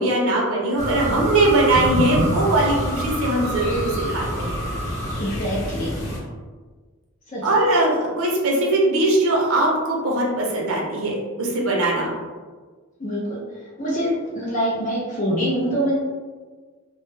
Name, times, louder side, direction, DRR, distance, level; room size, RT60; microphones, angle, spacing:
voice 1, 0.0-4.5 7.4-12.1, right 2 dB, 70° right, -2 dB, 0.6 m, -21 dB
sound 1, 0.8-6.2, equal, 75° left, 0.8 m, -26 dB
voice 2, 5.2-6.0 7.3-7.4 13.0-13.4 13.8-16.0, equal, 35° left, -6 dB, 0.4 m, -24 dB
2.1 x 2.0 x 3.1 m, 1.4 s
head